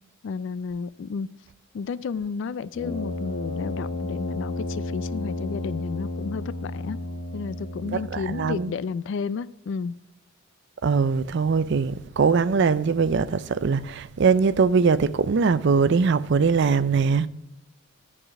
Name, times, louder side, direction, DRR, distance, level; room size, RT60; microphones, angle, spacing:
voice 1, 0.2-1.3 1.7-7.0 7.3-10.0, left 5 dB, 60° left, 0.3 m, -31 dB
Brass instrument, 2.7-8.6, left 2 dB, 30° left, 1.4 m, -32 dB
voice 2, 7.8-8.7 10.8-17.3, right 5 dB, 55° right, 0.4 m, -21 dB
11.0 x 4.9 x 5.8 m
head